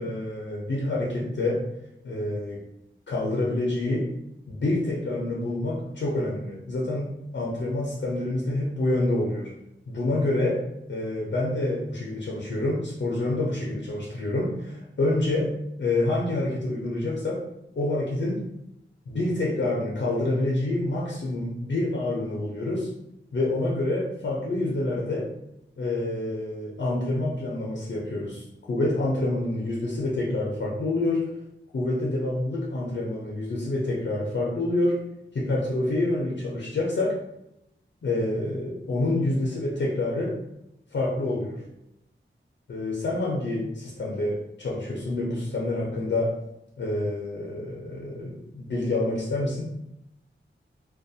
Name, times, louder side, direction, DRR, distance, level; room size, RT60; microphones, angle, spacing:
voice 1, 0.0-1.6 2.0-2.6 3.1-4.0 4.5-9.5 9.9-10.6 10.9-15.5 15.8-17.4 17.8-18.4 19.1-22.9 23.3-25.3 25.8-31.3 31.7-35.0 35.3-37.2 38.0-40.4 40.9-41.6 42.7-46.4 46.8-49.6, left 2 dB, 65° left, -4 dB, 0.5 m, -27 dB
2.3 x 2.2 x 2.6 m, 0.83 s
wide cardioid pair, 90°, 20 cm